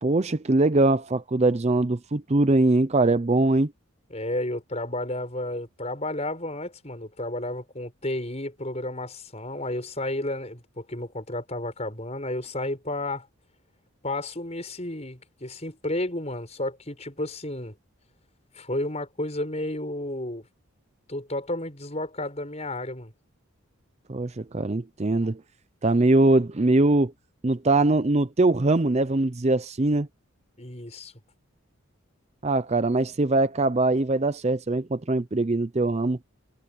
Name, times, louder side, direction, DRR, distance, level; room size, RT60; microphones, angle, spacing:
voice 1, 0.0-3.7 24.1-25.4 25.8-27.1 27.4-30.1 32.4-36.2, right 2 dB, 30° right, 0.5 m, -22 dB
voice 2, 4.1-13.3 14.0-17.7 18.5-20.5 21.1-23.1 30.6-31.1, left 1 dB, 30° left, 6.5 m, -32 dB
head